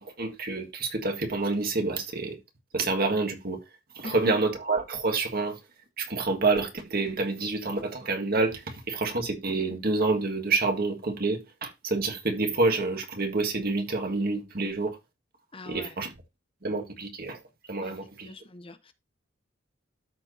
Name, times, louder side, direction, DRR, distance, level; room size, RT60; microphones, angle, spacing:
voice 1, 0.0-2.4 2.7-3.6 3.9-5.6 6.0-15.0 15.6-16.1 16.6-17.4 17.7-18.3, right 3 dB, 50° right, 1.7 m, -28 dB
voice 2, 4.0-4.3 15.5-16.0 17.8-17.9 18.2-18.9, left 2 dB, 30° left, 0.7 m, -40 dB
13.0 x 4.4 x 2.6 m
head